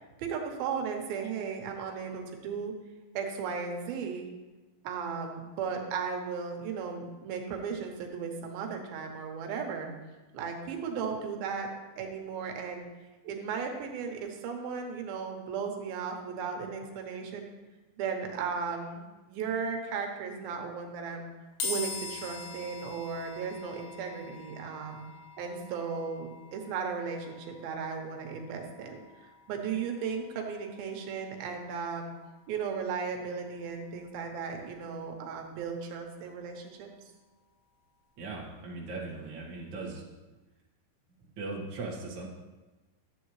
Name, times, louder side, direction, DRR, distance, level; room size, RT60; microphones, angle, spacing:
voice 1, 0.2-2.7 3.1-4.3 4.8-9.9 10.3-11.7 12.0-12.9 13.2-17.5 18.0-21.3 21.6-25.0 25.4-32.1 32.5-36.9, right 6 dB, 90° right, 2 dB, 2.9 m, -36 dB
sound 1, 21.6-34.9, left 4 dB, 85° left, 3.0 m, -45 dB
voice 2, 38.2-40.0 41.4-42.3, right 3 dB, 45° right, -4 dB, 1.8 m, -38 dB
12.0 x 8.1 x 3.2 m, 1.2 s
omnidirectional pair, 4.1 m